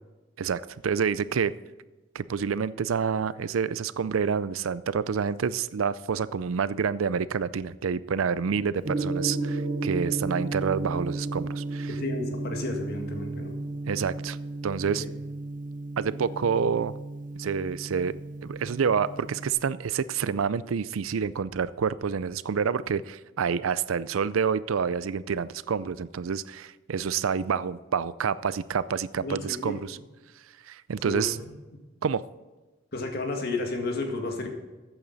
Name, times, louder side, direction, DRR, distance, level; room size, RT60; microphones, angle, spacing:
voice 1, 0.4-1.5 2.1-11.9 13.9-14.4 14.6-15.0 16.0-16.9 17.4-18.1 18.4-30.0 30.6-31.4 32.0-32.2, right 6 dB, 90° right, 17 dB, 0.5 m, -28 dB
Gong, 8.8-19.5, right 2 dB, 40° right, 0.8 m, -33 dB
voice 2, 11.9-13.6 14.8-15.1 16.1-16.2 29.2-29.8 31.0-31.3 32.9-34.5, left 2 dB, 50° left, 3 dB, 1.9 m, -32 dB
14.0 x 8.9 x 4.0 m, 1.2 s
head